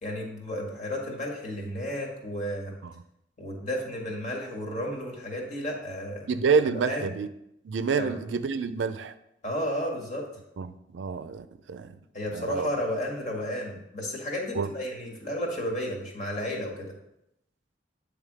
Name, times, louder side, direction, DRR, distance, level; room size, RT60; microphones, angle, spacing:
voice 1, 0.0-2.7 3.4-6.3 6.8-7.1 8.0-8.2 9.4-10.3 12.1-16.9, equal, 45° left, -1 dB, 1.7 m, -32 dB
voice 2, 6.3-7.3 7.6-9.1 10.6-11.9 12.3-12.7 14.5-14.7, right 5 dB, 80° right, 11 dB, 0.4 m, -28 dB
8.9 x 3.5 x 4.8 m, 0.82 s
head